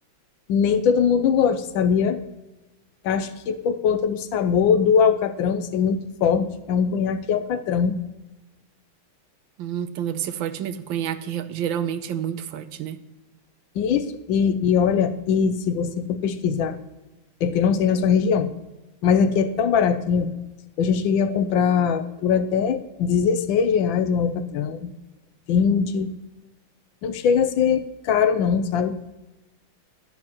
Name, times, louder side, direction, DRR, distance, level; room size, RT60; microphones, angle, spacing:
voice 1, 0.5-2.2 3.0-8.0 13.8-16.8 17.4-18.5 19.0-20.3 20.8-24.9 25.5-26.1 27.0-29.0, left 7 dB, 75° left, 10 dB, 1.4 m, -21 dB
voice 2, 9.6-13.0, right 9 dB, 75° right, 11 dB, 1.4 m, -29 dB
11.0 x 10.5 x 3.0 m, 1.0 s
omnidirectional pair, 2.2 m